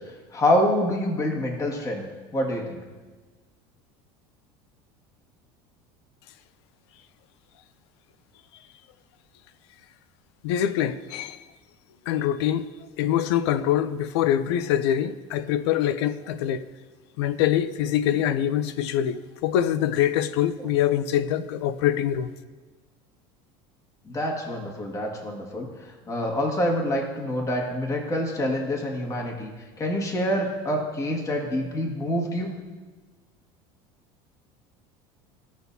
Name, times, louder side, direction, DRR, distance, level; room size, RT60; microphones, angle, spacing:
voice 1, 0.0-2.0 2.3-2.8 20.6-20.7 24.1-29.5 29.8-32.5, left 1 dB, 25° left, 1.8 m, -26 dB
voice 2, 10.4-11.4 12.1-12.7 13.0-16.6 17.2-22.3, left 10 dB, 85° left, 0.5 m, -24 dB
16.5 x 6.2 x 2.7 m
supercardioid pair, 115°, 14 cm